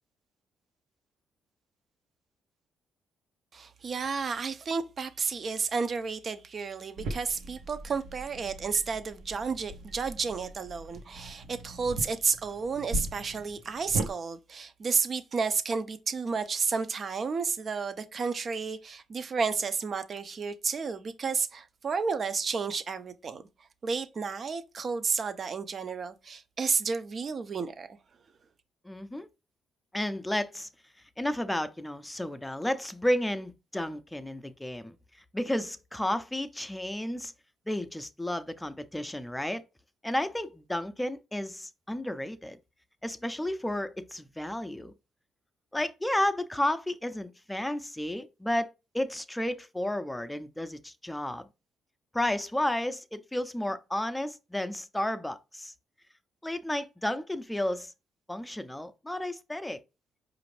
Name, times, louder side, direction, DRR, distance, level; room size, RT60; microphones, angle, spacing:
voice 1, 3.5-23.4 23.8-28.0, right 5 dB, 45° right, 0.5 m, -31 dB
sound 1, 7.0-14.1, right 2 dB, 80° right, 0.8 m, -39 dB
voice 2, 28.8-29.3 29.9-30.7 31.2-35.0 35.3-37.3 37.7-39.6 40.0-42.6 43.0-44.9 45.7-51.5 52.1-55.7 56.4-57.9 58.3-59.8, left 1 dB, 10° left, 0.5 m, -32 dB
4.8 x 2.5 x 3.2 m
cardioid pair, 90°, 0 cm